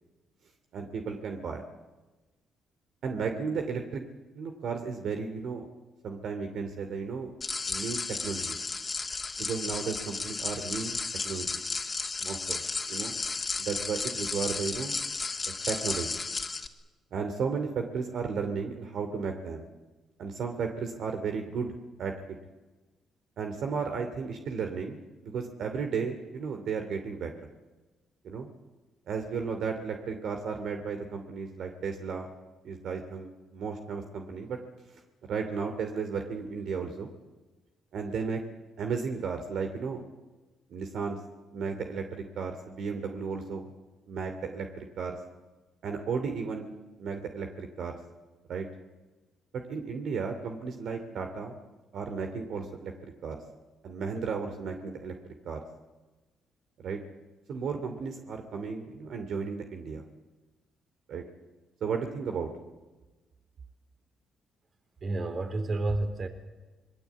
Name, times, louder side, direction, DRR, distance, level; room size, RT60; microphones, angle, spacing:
voice 1, 0.7-1.6 3.0-4.0 4.3-5.7 6.0-7.3 7.7-8.6 9.4-11.0 11.2-11.6 12.2-12.6 12.9-13.1 13.6-14.9 15.7-16.2 17.1-19.7 20.2-21.7 22.0-22.4 23.4-25.0 25.2-27.3 28.2-28.5 29.1-32.3 32.6-34.6 35.3-37.1 37.9-38.4 38.8-40.0 40.7-41.2 41.5-43.6 44.1-45.2 45.8-46.7 47.0-48.0 48.5-48.7 49.5-51.5 51.9-53.4 53.8-55.6 56.8-57.0 57.5-60.0 61.1-61.2 61.8-62.5, right 5 dB, 70° right, 5 dB, 2.7 m, -34 dB
sound 1, 7.4-16.7, left 4 dB, 30° left, 2.4 m, -33 dB
voice 2, 65.0-66.3, right 2 dB, 45° right, 7 dB, 4.0 m, -30 dB
26.5 x 22.0 x 8.4 m, 1.2 s
cardioid pair, 90°, 0 cm